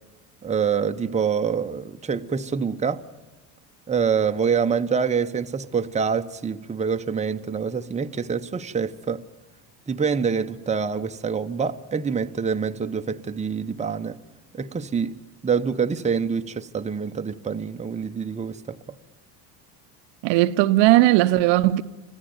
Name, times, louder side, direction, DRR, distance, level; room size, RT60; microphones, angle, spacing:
voice 1, 0.4-3.0 3.9-9.2 9.9-14.2 14.5-15.2 15.4-18.8, right 6 dB, 15° right, 0.9 m, -26 dB
voice 2, 20.2-21.8, right 17 dB, 60° right, 0.8 m, -17 dB
25.5 x 15.5 x 9.4 m
hypercardioid pair, 75°, 48 cm